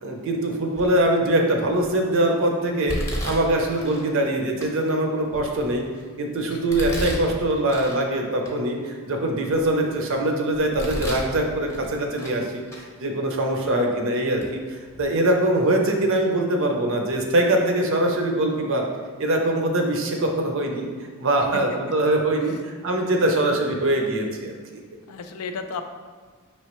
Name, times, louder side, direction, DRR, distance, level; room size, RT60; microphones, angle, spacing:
voice 1, 0.0-3.0 3.2-5.8 6.2-18.9 19.2-20.9 21.2-24.6, right 1 dB, 60° right, 2 dB, 0.6 m, -23 dB
Domestic sounds home sounds, 0.8-1.1 1.7-2.1 2.9-4.0 4.6-4.7 5.3-6.1 6.7-8.0 8.4-8.5 9.1-10.1 10.5-11.3 11.7-12.4 12.7-12.8 13.6-13.7 14.4-14.5 14.9-15.0, equal, 15° left, 0.7 m, -33 dB
voice 2, 25.1-25.8, left 5 dB, 75° left, 7 dB, 0.4 m, -33 dB
5.4 x 3.1 x 3.0 m, 1.5 s
head